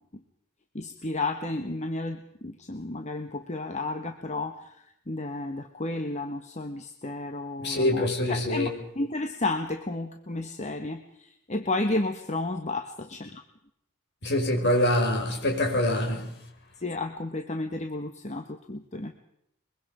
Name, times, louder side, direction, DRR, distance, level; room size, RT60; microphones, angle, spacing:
voice 1, 0.7-4.6 5.1-11.0 11.5-13.4 16.8-19.1, left 2 dB, 35° left, 1.3 m, -32 dB
voice 2, 7.6-8.7 14.2-16.3, left 1 dB, 55° left, 4.9 m, -25 dB
23.0 x 22.5 x 5.0 m
head